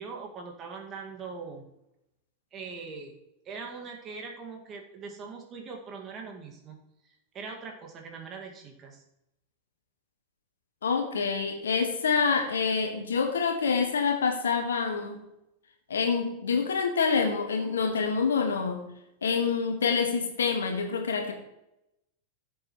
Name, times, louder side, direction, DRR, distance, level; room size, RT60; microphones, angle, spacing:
voice 1, 0.0-1.7 2.5-3.2 3.5-6.8 7.3-9.0, right 4 dB, 30° right, 2 dB, 2.1 m, -41 dB
voice 2, 10.8-15.2 15.9-18.9 19.2-21.3, left 5 dB, 65° left, 5 dB, 1.7 m, -27 dB
15.5 x 7.9 x 3.2 m, 0.86 s
figure-of-eight pair, 90°, 0 cm